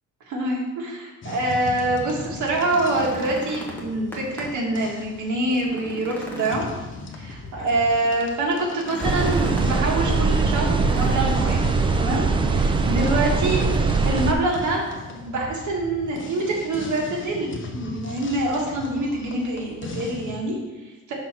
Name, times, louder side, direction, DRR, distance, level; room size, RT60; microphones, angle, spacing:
voice 1, 0.3-6.6 7.2-12.2 12.5-13.6 14.0-14.8 15.1-21.1, right 2 dB, 65° right, -2 dB, 1.7 m, -25 dB
sound 1, 1.2-20.4, left 3 dB, 40° left, 0.8 m, -39 dB
sound 2, 2.4-4.7 5.1-5.2 5.6-7.5 8.7-9.8 10.7-11.6 12.8-13.5 13.7-13.9 14.4-15.0 16.2-16.3, equal, 5° left, 1.1 m, -37 dB
sound 3, 9.0-14.3, right 4 dB, 15° right, 0.3 m, -21 dB
5.5 x 3.8 x 6.0 m, 1.1 s
cardioid pair, 165°, 31 cm